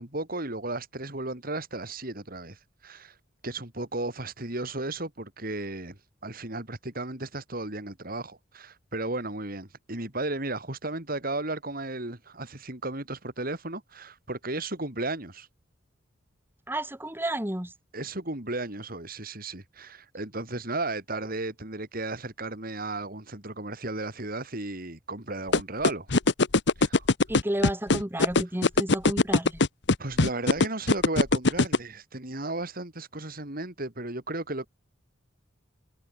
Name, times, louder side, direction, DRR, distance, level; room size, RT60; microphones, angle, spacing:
voice 1, 0.0-3.1 3.4-6.0 6.2-15.5 17.9-26.1 26.8-27.1 30.0-34.7, right 2 dB, 50° right, 4.2 m, -34 dB
voice 2, 16.7-17.7 27.3-29.6, right 1 dB, 10° right, 2.0 m, -31 dB
sound 1, 25.5-31.8, left 3 dB, 65° left, 1.2 m, -20 dB
head